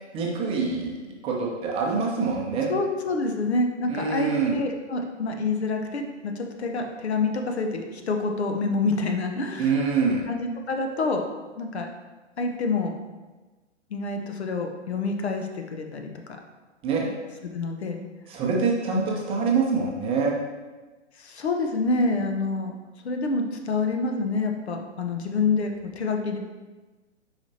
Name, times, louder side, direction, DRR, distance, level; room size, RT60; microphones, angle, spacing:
voice 1, 0.1-0.9 1.2-2.7 3.9-4.6 9.6-10.2 16.8-17.0 18.3-20.3, right 5 dB, 15° right, -2 dB, 0.7 m, -25 dB
voice 2, 2.7-9.9 10.3-11.2 11.6-11.9 12.4-12.9 13.9-16.4 17.0-17.1 17.5-18.1 21.2-22.7 23.0-26.4, left 3 dB, 65° left, 4 dB, 0.9 m, -27 dB
7.2 x 5.0 x 2.8 m, 1.2 s
figure-of-eight pair, 115°, 36 cm